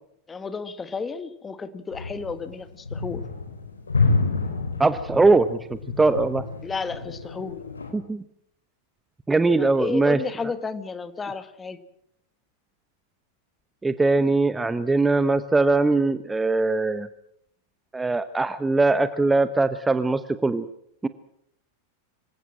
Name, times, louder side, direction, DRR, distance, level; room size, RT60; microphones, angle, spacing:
voice 1, 0.3-3.2 6.6-7.6 9.6-11.8, left 4 dB, 15° left, 12 dB, 1.7 m, -32 dB
sound 1, 1.9-7.9, left 3 dB, 75° left, 4.1 m, -28 dB
voice 2, 4.8-6.4 7.9-8.2 9.3-10.2 13.8-17.1 17.9-20.7 21.0-21.1, right 3 dB, 10° right, 13 dB, 0.9 m, -21 dB
25.5 x 17.0 x 7.5 m, 0.74 s
figure-of-eight pair, 90°, 0 cm